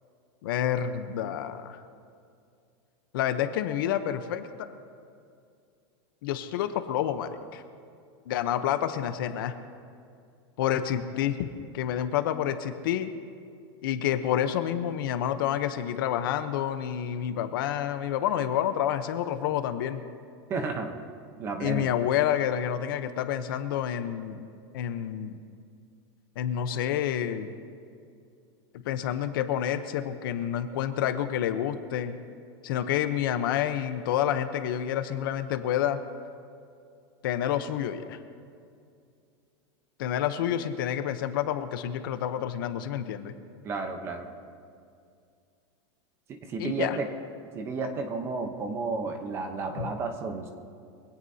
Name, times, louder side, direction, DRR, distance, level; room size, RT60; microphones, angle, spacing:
voice 1, 0.4-1.8 3.1-4.7 6.2-7.6 8.3-9.6 10.6-11.5 11.7-13.1 13.8-20.0 21.6-24.4 24.7-25.4 26.4-27.5 28.8-32.1 32.6-36.0 37.2-38.2 40.0-43.3 46.6-47.0 49.8-49.9, left 10 dB, 50° left, 10 dB, 0.8 m, -28 dB
voice 2, 20.5-20.9 21.4-21.9 43.6-44.3 46.3-47.1 47.5-50.5, right 4 dB, 15° right, 5 dB, 0.9 m, -32 dB
23.5 x 17.0 x 2.8 m, 2.4 s
supercardioid pair, 180°, 14 cm